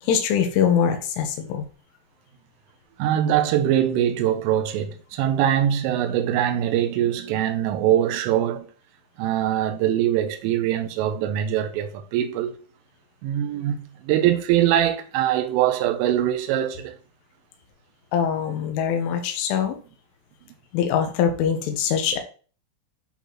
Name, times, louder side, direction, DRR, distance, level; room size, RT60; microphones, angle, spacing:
voice 1, 0.0-1.7 18.1-19.8 20.7-22.2, left 8 dB, 80° left, 3.4 m, -23 dB
voice 2, 3.0-8.7 9.2-12.6 13.2-17.0, right 11 dB, 80° right, 3.2 m, -22 dB
10.0 x 4.1 x 3.0 m
omnidirectional pair, 6.0 m